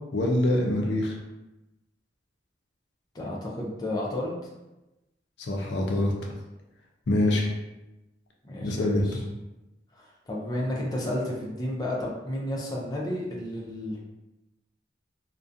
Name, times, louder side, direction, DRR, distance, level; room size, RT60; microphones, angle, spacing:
voice 1, 0.1-1.1 5.4-6.1 7.1-7.5 8.6-9.2, left 1 dB, 80° left, 0 dB, 0.5 m, -24 dB
voice 2, 3.1-4.5 8.4-9.2 9.9-14.0, left 1 dB, 20° left, -3 dB, 0.4 m, -32 dB
2.4 x 2.1 x 2.5 m, 0.99 s
head